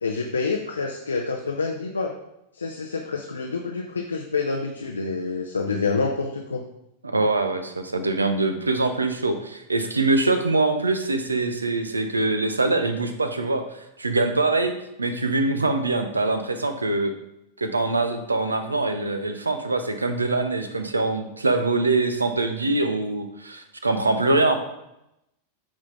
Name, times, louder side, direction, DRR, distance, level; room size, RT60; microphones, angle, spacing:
voice 1, 0.0-2.1 2.6-6.6, left 4 dB, 75° left, 1 dB, 0.5 m, -27 dB
voice 2, 7.0-13.6 14.0-14.7 15.0-17.1 17.6-24.6, right 2 dB, 80° right, 8 dB, 0.6 m, -23 dB
8.8 x 3.8 x 3.7 m, 0.84 s
figure-of-eight pair, 90°, 0 cm